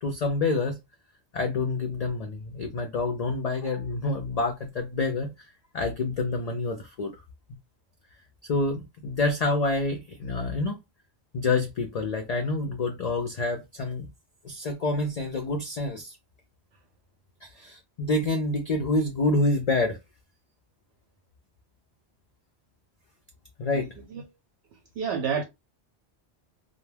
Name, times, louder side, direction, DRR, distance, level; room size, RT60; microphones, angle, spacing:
voice 1, 0.0-0.8 1.3-5.3 5.7-7.1 8.4-10.8 11.3-14.1 14.4-16.1 17.4-20.0 23.6-23.9, left 2 dB, 55° left, 0.4 m, -27 dB
voice 2, 23.7-24.2 25.0-25.4, right 6 dB, 70° right, 0.8 m, -30 dB
2.2 x 2.2 x 3.2 m
omnidirectional pair, 1.1 m